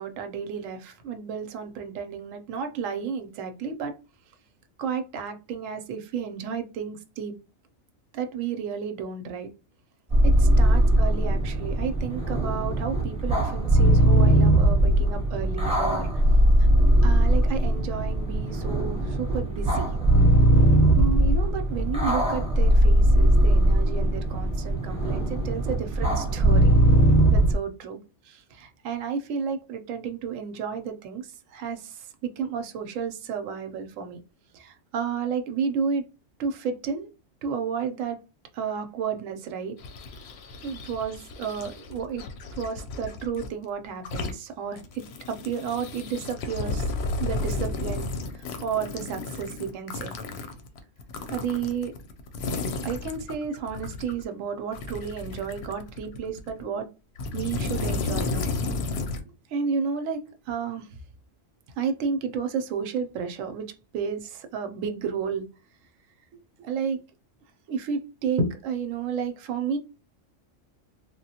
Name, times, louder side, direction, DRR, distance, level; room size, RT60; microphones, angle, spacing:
voice 1, 0.0-4.0 4.8-7.3 8.1-9.5 10.2-16.1 17.0-19.9 20.9-26.8 27.3-28.0 28.6-31.2 31.5-34.2 34.5-36.0 36.4-37.1 37.4-38.2 38.5-39.7 40.6-42.2 42.6-46.9 47.2-48.1 48.6-50.1 51.3-51.9 52.8-56.9 57.3-58.5 59.5-60.9 61.8-63.7 63.9-65.4 66.6-67.0 67.7-69.8, right 6 dB, 90° right, 7 dB, 1.0 m, -32 dB
sound 1, 10.1-27.5, right 1 dB, 5° right, 0.6 m, -20 dB
sound 2, 39.8-43.5 43.9-44.3 44.7-54.2 54.7-56.6 57.2-59.2, left 3 dB, 65° left, 0.7 m, -33 dB
3.4 x 2.1 x 2.7 m, 0.30 s
omnidirectional pair, 1.3 m